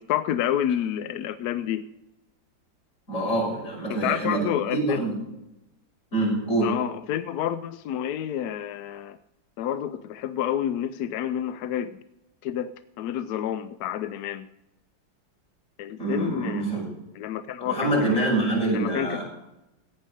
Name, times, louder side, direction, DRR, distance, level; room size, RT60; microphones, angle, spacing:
voice 1, 0.0-1.8 3.9-5.0 6.6-9.2 9.6-12.0 12.4-12.7 13.0-14.5 15.8-16.7 17.1-17.9 18.2-18.3 18.7-19.2, left 10 dB, 70° left, 11 dB, 0.9 m, -29 dB
voice 2, 3.1-5.2 6.1-6.7 16.0-16.9 17.6-19.2, right 2 dB, 40° left, -4 dB, 6.1 m, -25 dB
15.5 x 8.9 x 5.2 m, 0.92 s
omnidirectional pair, 2.0 m